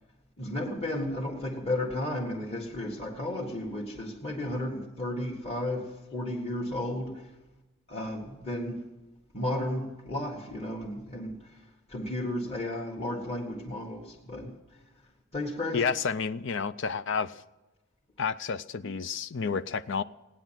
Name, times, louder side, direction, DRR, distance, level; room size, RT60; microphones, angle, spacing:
voice 1, 0.4-7.3 7.9-8.8 9.3-14.8 15.3-15.8, left 1 dB, 30° left, 1.7 m, -33 dB
voice 2, 15.7-17.4 18.2-20.0, left 5 dB, 65° left, 0.5 m, -30 dB
18.0 x 10.0 x 7.5 m
head